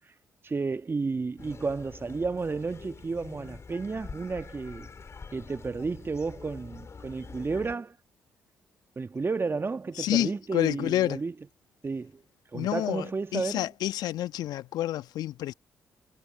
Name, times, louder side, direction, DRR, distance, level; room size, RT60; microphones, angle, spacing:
voice 1, 0.4-4.9 5.3-7.9 8.9-11.3 11.8-12.2 12.5-13.7, right 4 dB, 30° right, 1.6 m, -32 dB
sound 1, 1.4-7.8, left 5 dB, 40° left, 4.3 m, -46 dB
voice 2, 10.0-11.2 12.5-15.5, left 13 dB, 65° left, 1.3 m, -29 dB
hypercardioid pair, 40°, 7 cm